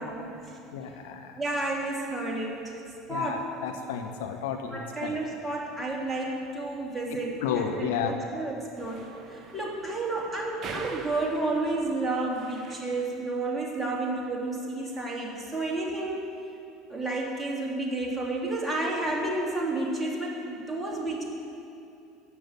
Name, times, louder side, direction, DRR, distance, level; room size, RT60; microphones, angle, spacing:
voice 1, 0.0-0.6 1.4-2.7 3.1-3.4 4.7-16.3 16.9-21.2, right 2 dB, 10° right, -3 dB, 3.2 m, -31 dB
voice 2, 0.7-1.3 3.1-5.2 7.4-8.2, left 7 dB, 65° left, 5 dB, 0.9 m, -32 dB
sound 1, 8.8-13.3, right 5 dB, 35° right, 1.1 m, -44 dB
13.0 x 8.5 x 9.2 m, 2.7 s
figure-of-eight pair, 65°, 0 cm